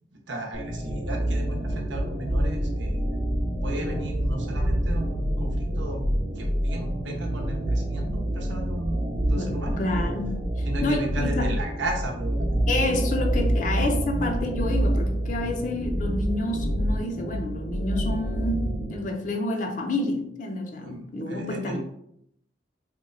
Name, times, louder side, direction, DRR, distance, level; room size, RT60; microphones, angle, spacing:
voice 1, 0.1-3.1 3.6-6.0 6.4-9.8 10.6-12.6 20.8-21.8, right 1 dB, 75° right, 2 dB, 0.7 m, -35 dB
sound 1, 0.5-19.0, right 1 dB, 35° right, 0.7 m, -27 dB
voice 2, 9.4-11.5 12.7-21.8, left 2 dB, 45° left, 2 dB, 0.5 m, -29 dB
2.9 x 2.1 x 3.8 m, 0.72 s
head